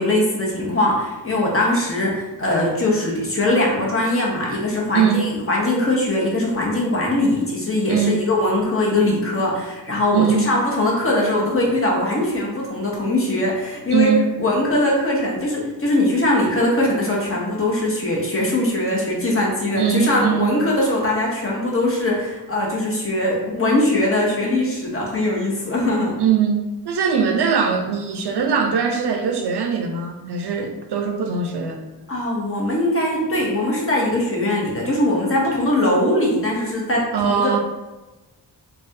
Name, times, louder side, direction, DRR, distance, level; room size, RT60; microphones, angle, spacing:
voice 1, 0.0-26.2 32.1-37.6, left 1 dB, 30° left, -3 dB, 0.7 m, -21 dB
voice 2, 7.9-8.3 10.1-10.4 13.9-14.2 19.7-20.5 26.2-26.6 26.9-31.8 37.1-37.6, right 7 dB, 70° right, 3 dB, 0.5 m, -21 dB
3.2 x 2.3 x 2.6 m, 1.1 s
wide cardioid pair, 140°, 43 cm